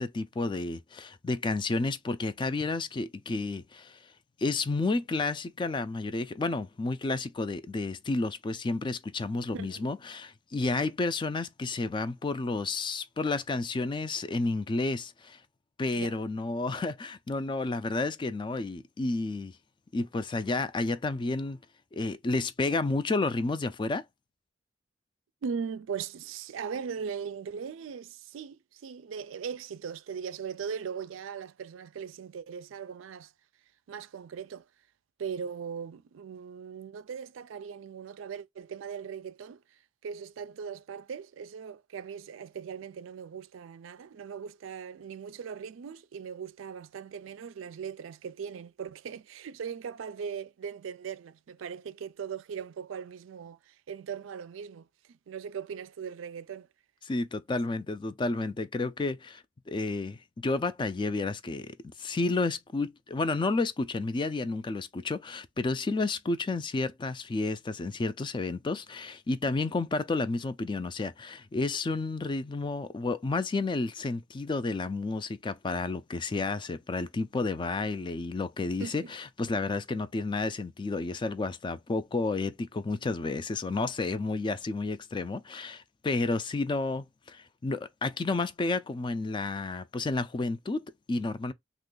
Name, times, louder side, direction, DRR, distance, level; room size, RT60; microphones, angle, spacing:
voice 1, 0.0-4.0 4.4-15.4 15.8-19.6 19.9-21.6 21.9-24.0 57.0-91.5, left 3 dB, 25° left, 0.3 m, -31 dB
voice 2, 9.5-9.9 15.9-16.2 25.4-33.3 33.9-34.7 35.2-39.6 40.0-54.9 55.3-56.7 78.8-79.1, right 6 dB, 90° right, 0.4 m, -39 dB
2.9 x 2.4 x 3.8 m
head